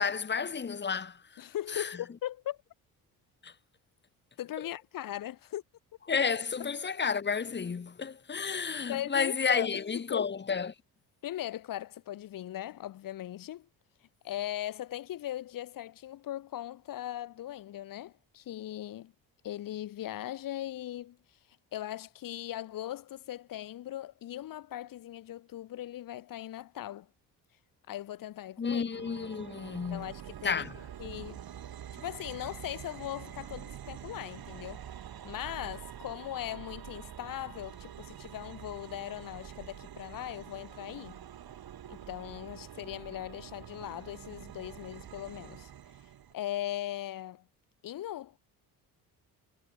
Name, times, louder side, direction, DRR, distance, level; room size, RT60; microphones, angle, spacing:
voice 1, 0.0-1.4 1.7-2.0 3.4-3.5 6.1-10.7 28.6-30.1 30.4-30.7, left 6 dB, 25° left, 1.1 m, -31 dB
voice 2, 1.4-2.6 4.4-5.6 8.9-10.3 11.2-13.7 14.2-19.1 19.4-21.2 21.7-27.1 27.9-28.8 29.9-30.6 31.0-31.4 31.9-34.9 35.2-41.2 41.9-45.7 46.3-47.4 47.8-48.4, left 13 dB, 50° left, 0.8 m, -39 dB
sound 1, 28.9-46.3, right 10 dB, 55° right, 2.6 m, -46 dB
supercardioid pair, 60°, 44 cm